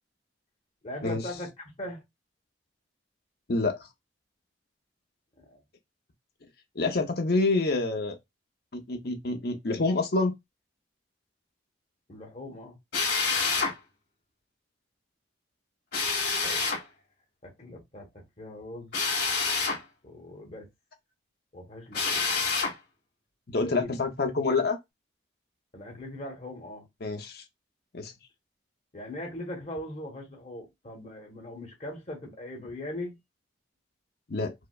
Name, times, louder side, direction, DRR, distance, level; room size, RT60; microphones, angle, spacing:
voice 1, 0.8-1.5 1.8-2.0 5.4-5.6 12.1-12.8 16.4-16.7 17.4-19.0 20.0-20.7 21.5-22.3 23.6-24.0 25.7-26.9 28.9-33.2, left 1 dB, 35° left, 1.1 m, -40 dB
voice 2, 6.8-8.2 8.7-10.3 23.5-24.8 27.0-27.4 27.9-28.1 34.3-34.5, left 3 dB, 55° left, 0.7 m, -27 dB
Drill, 12.9-13.7 15.9-16.8 18.9-19.8 21.9-22.7, left 4 dB, 70° left, 1.8 m, -27 dB
4.7 x 2.1 x 2.3 m
head